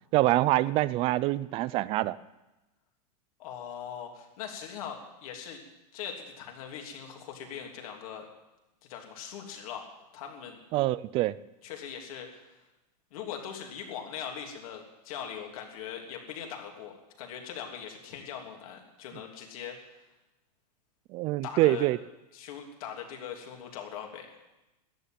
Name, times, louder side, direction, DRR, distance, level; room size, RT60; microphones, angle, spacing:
voice 1, 0.1-2.2 10.7-11.4 21.1-22.0, right 17 dB, 25° right, 18 dB, 0.4 m, -25 dB
voice 2, 3.4-5.6 5.9-8.2 8.9-9.8 10.1-10.6 11.6-12.6 13.1-19.9 21.4-21.9 22.3-24.4, left 8 dB, 60° left, 2 dB, 3.1 m, -41 dB
13.5 x 9.9 x 9.2 m, 0.98 s
supercardioid pair, 155°, 20 cm